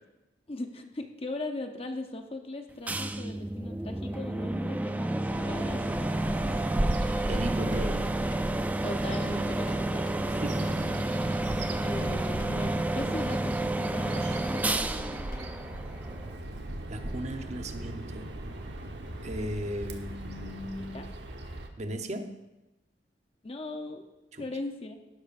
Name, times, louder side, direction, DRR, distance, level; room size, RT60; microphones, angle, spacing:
voice 1, 0.5-6.8 8.8-10.0 11.8-15.3 20.9-21.1 23.4-24.0 24.4-25.0, left 2 dB, 30° left, 4 dB, 0.8 m, -39 dB
sound 1, 2.9-16.4, right 1 dB, 10° right, 0.3 m, -31 dB
Bird vocalization bird call bird song, 5.3-21.7, right 1 dB, 70° right, 1.1 m, -37 dB
sound 2, 7.1-8.8 9.1-11.1 11.4-13.5 13.8-15.5, left 2 dB, 55° left, 1.1 m, -53 dB
voice 2, 7.3-8.2 10.3-11.0 16.9-18.3 19.2-21.0 21.8-22.4 24.3-24.5, right 1 dB, 40° right, 6 dB, 0.8 m, -36 dB
15.0 x 12.0 x 2.5 m, 1.0 s
head